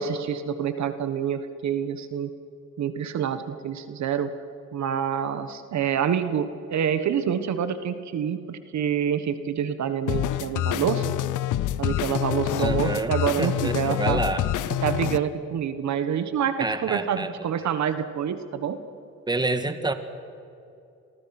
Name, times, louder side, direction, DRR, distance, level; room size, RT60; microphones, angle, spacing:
voice 1, 0.0-2.3 2.8-4.3 4.7-11.0 11.8-14.2 14.8-18.8, right 8 dB, 65° right, 10 dB, 1.5 m, -27 dB
sound 1, 10.1-15.2, left 13 dB, 80° left, 0.8 m, -27 dB
voice 2, 12.6-13.1 13.4-14.5 16.6-17.3 19.3-19.9, right 2 dB, 15° right, 9 dB, 1.8 m, -27 dB
30.0 x 23.0 x 6.0 m, 2.6 s
cardioid pair, 90°, 30 cm